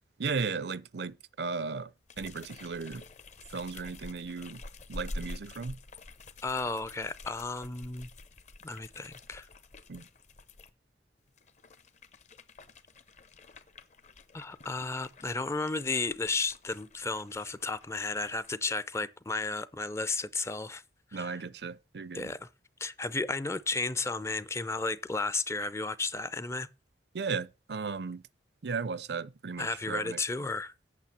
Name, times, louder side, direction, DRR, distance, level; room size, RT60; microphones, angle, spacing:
voice 1, 0.2-1.9 2.2-3.0 3.5-4.6 4.9-5.8 9.9-10.1 21.1-22.3 27.1-28.2 28.6-30.2, right 5 dB, 65° right, 0.5 m, -35 dB
sound 1, 2.1-10.7 11.3-18.6, left 2 dB, 40° left, 0.8 m, -48 dB
voice 2, 6.4-8.1 8.6-9.5 14.3-20.8 21.1-21.4 22.1-22.5 22.8-26.7 29.6-30.7, left 3 dB, 15° left, 0.5 m, -33 dB
8.5 x 7.2 x 7.3 m
head